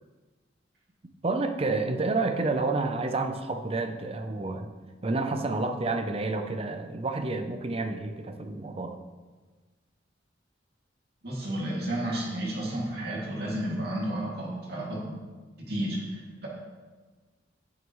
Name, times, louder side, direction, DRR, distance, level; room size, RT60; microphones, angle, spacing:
voice 1, 1.2-4.7 5.0-9.0, right 3 dB, 30° right, 7 dB, 0.6 m, -29 dB
voice 2, 11.2-15.2 15.6-16.5, right 1 dB, 60° right, -4 dB, 2.5 m, -32 dB
9.1 x 9.0 x 3.1 m, 1.3 s
head